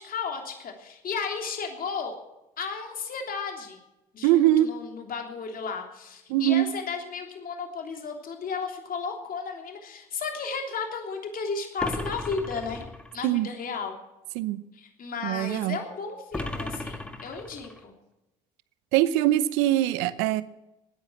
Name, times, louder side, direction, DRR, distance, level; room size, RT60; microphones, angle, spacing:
voice 1, 0.0-2.2 2.6-3.8 4.1-12.8 13.1-14.0 14.7-17.9, left 5 dB, 50° left, 3 dB, 3.2 m, -34 dB
voice 2, 4.2-4.7 6.3-6.7 13.2-13.5 14.4-14.6 15.2-15.8 18.9-20.4, right 14 dB, 80° right, 16 dB, 0.8 m, -22 dB
sound 1, 11.8-13.2 16.3-17.8, left 1 dB, 5° left, 1.8 m, -35 dB
16.0 x 10.0 x 7.3 m, 0.93 s
supercardioid pair, 70°, 19 cm